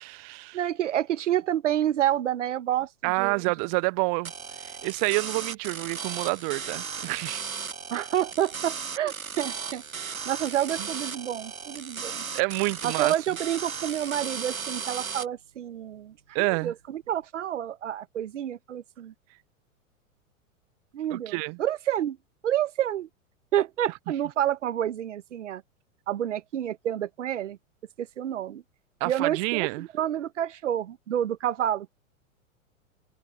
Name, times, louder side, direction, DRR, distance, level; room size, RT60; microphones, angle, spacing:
voice 1, 0.0-0.6 3.0-4.3 4.6-7.5 12.1-13.1 16.3-16.7 21.1-21.6 29.0-29.9, right 36 dB, 25° right, 0.6 m, -28 dB
voice 2, 0.5-3.4 7.9-9.8 10.2-12.2 12.8-19.1 20.9-22.2 22.4-23.1 23.5-25.6 26.1-27.6 28.0-28.6 29.0-31.9, right 11 dB, 60° right, 1.6 m, -29 dB
sound 1, 4.2-15.2, right 6 dB, 80° right, 1.3 m, -36 dB
figure-of-eight pair, 100°, 41 cm